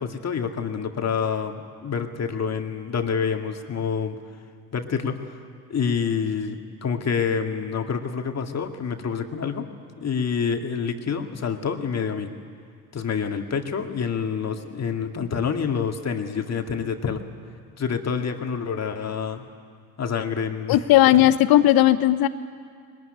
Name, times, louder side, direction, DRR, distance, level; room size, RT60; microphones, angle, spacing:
voice 1, 0.0-4.2 4.7-5.4 5.7-9.7 10.0-12.3 12.9-17.2 17.8-19.5 20.0-20.8 21.1-21.2, left 6 dB, 35° left, 5 dB, 2.2 m, -27 dB
voice 2, 20.7-22.3, left 14 dB, 50° left, 13 dB, 1.0 m, -16 dB
21.5 x 19.0 x 10.0 m, 2.1 s
hypercardioid pair, 60°, 44 cm